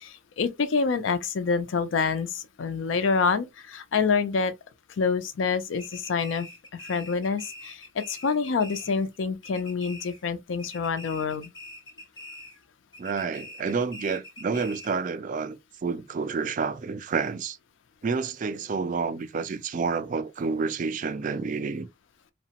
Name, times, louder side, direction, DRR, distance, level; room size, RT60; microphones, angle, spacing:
voice 1, 0.0-4.5 5.0-6.5 6.8-11.5, left 5 dB, 80° left, 0.4 m, -27 dB
sound 1, 5.8-9.2 9.4-10.3 10.6-12.6 12.9-15.1, left 2 dB, 25° left, 0.5 m, -44 dB
voice 2, 13.0-17.6 18.0-21.9, right 5 dB, 45° right, 0.3 m, -29 dB
2.9 x 2.1 x 2.8 m
head